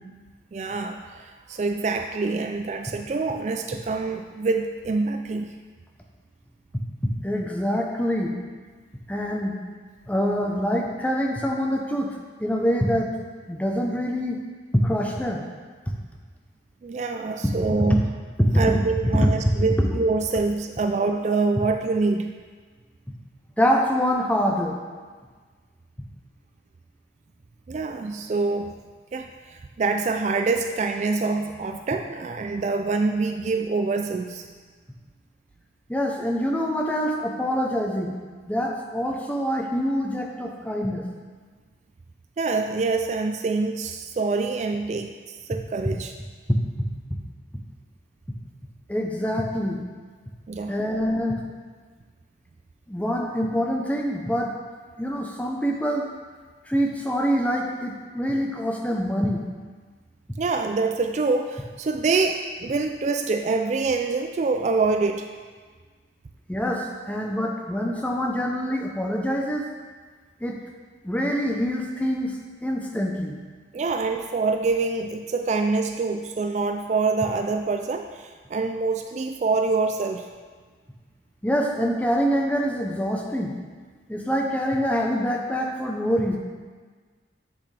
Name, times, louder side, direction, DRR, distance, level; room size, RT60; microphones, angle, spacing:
voice 1, 0.5-5.6 16.8-18.1 18.5-22.4 27.7-28.8 29.1-29.3 29.8-34.5 42.4-46.1 50.5-50.7 60.4-65.3 73.7-80.3, right 3 dB, 40° right, 5 dB, 0.3 m, -25 dB
voice 2, 6.7-8.3 9.1-9.5 10.1-12.1 12.4-13.1 13.5-14.4 14.7-15.5 15.9-16.0 17.8-17.9 18.4-18.8 19.8-19.9 23.6-24.8 35.9-38.1 38.5-41.0 48.9-49.8 50.7-51.4 52.9-54.5 55.0-56.1 56.7-59.4 66.5-69.6 70.4-70.6 71.0-73.4 81.4-83.5 84.1-86.4, equal, 10° left, 0 dB, 0.7 m, -25 dB
7.8 x 7.0 x 3.3 m, 1.5 s
head